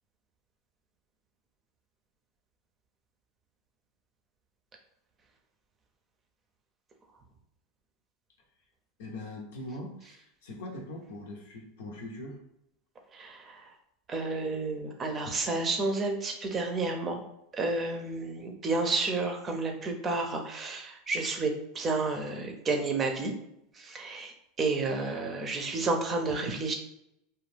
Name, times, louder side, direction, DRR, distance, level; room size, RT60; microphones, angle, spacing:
voice 1, 9.0-12.4, left 1 dB, 80° left, 1 dB, 0.7 m, -41 dB
voice 2, 13.1-13.7 14.1-17.2 17.5-23.3 23.7-24.3 24.6-26.7, right 3 dB, 30° right, 3 dB, 0.5 m, -31 dB
2.4 x 2.3 x 3.3 m, 0.81 s
hypercardioid pair, 105°, 0 cm